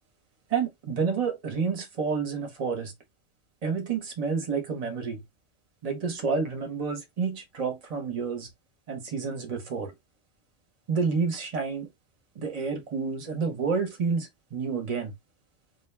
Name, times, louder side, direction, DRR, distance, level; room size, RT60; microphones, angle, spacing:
voice 1, 0.5-2.9 3.6-5.2 5.8-8.5 8.9-9.9 10.9-11.9 12.4-15.1, right 5 dB, 35° right, 0.7 m, -29 dB
2.2 x 2.2 x 3.1 m
omnidirectional pair, 1.3 m